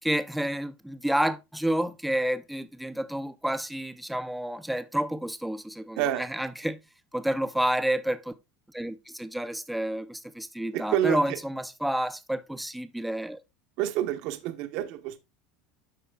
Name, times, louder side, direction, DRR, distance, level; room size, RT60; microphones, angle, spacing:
voice 1, 0.0-6.8 7.1-8.3 8.7-13.4, right 1 dB, ahead, 0.4 m, -29 dB
voice 2, 10.7-11.4 13.8-15.2, right 12 dB, 55° right, 0.8 m, -28 dB
12.5 x 4.2 x 2.2 m
supercardioid pair, 160°, 0 cm